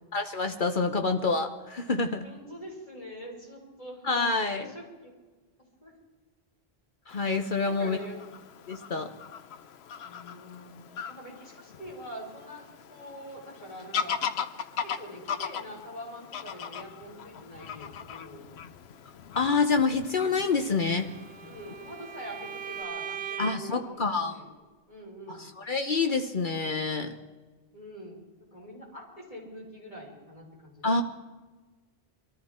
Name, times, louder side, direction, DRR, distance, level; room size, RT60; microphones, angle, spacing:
voice 1, 0.1-2.2 4.0-4.7 7.1-8.0 8.7-9.1 19.3-21.1 23.4-24.4 25.3-27.1 30.8-31.0, left 4 dB, 55° left, 6 dB, 1.1 m, -27 dB
voice 2, 2.2-4.0 4.5-5.1 5.8-5.9 7.6-8.2 10.0-12.6 12.9-14.2 14.8-18.4 21.4-24.5 24.9-25.4 27.7-28.2 28.5-31.0, equal, 35° left, -3 dB, 4.8 m, -44 dB
Fowl / Bird vocalization bird call bird song, 7.1-22.8, left 7 dB, 85° left, 1.0 m, -39 dB
Bowed string instrument, 20.8-23.8, right 8 dB, 80° right, 1.0 m, -40 dB
23.5 x 14.0 x 4.4 m, 1.3 s
omnidirectional pair, 1.0 m